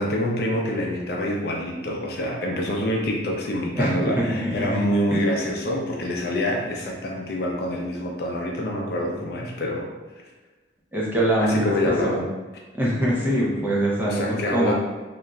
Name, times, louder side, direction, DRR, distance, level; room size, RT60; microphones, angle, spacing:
voice 1, 0.0-9.9 11.4-12.2 13.3-13.4 14.0-14.7, left 1 dB, 55° left, 0 dB, 0.4 m, -26 dB
voice 2, 3.8-4.8 5.1-5.2 10.9-12.2 12.7-14.7, right 1 dB, 10° right, -5 dB, 0.4 m, -24 dB
2.9 x 2.4 x 2.3 m, 1.2 s
head